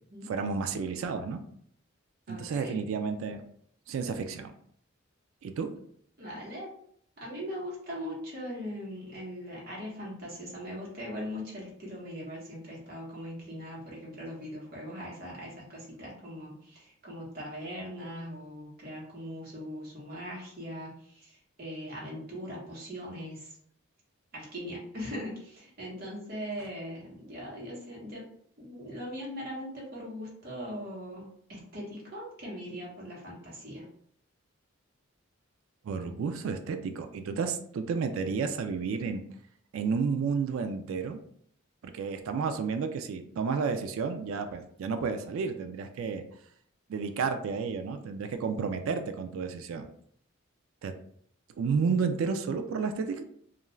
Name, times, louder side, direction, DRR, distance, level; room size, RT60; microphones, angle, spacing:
voice 1, 0.3-1.4 2.3-3.4 3.9-4.5 5.4-5.7 35.8-39.2 39.7-41.2 41.8-46.2 46.9-49.9 50.8-50.9 51.6-53.2, right 5 dB, 75° right, 7 dB, 0.3 m, -31 dB
voice 2, 2.3-2.7 6.2-6.7 7.2-23.6 24.3-28.2 28.6-33.9, equal, 50° right, -5 dB, 1.1 m, -40 dB
2.4 x 2.2 x 3.1 m, 0.65 s
head